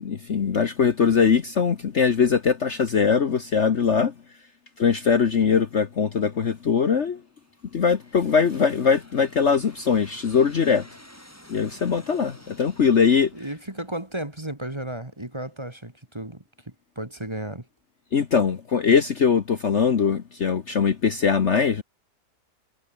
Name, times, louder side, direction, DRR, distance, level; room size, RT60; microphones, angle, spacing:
voice 1, 0.0-4.1 4.8-7.2 7.7-10.9 11.5-13.3 18.1-21.8, left 6 dB, 45° left, 1.3 m, -21 dB
Aircraft, 5.7-6.2 6.9-14.5, equal, 10° left, 5.1 m, -52 dB
voice 2, 13.3-16.4 17.0-17.7, right 1 dB, 15° right, 2.0 m, -33 dB
omnidirectional pair, 1.8 m